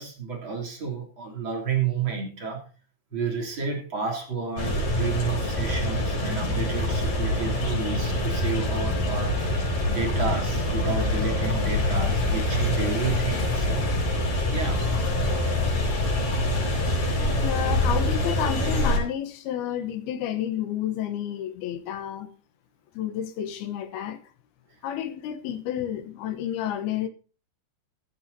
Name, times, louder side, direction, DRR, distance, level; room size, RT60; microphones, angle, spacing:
voice 1, 0.0-2.6 3.1-9.4 9.9-13.8 14.5-14.9 17.4-17.5, right 5 dB, 35° right, 3.7 m, -31 dB
sound 1, 4.6-19.0, left 1 dB, 60° left, 6.7 m, -25 dB
voice 2, 17.2-22.3 22.9-24.2 24.8-27.1, left 10 dB, 85° left, 3.1 m, -30 dB
15.0 x 14.5 x 2.8 m
omnidirectional pair, 4.3 m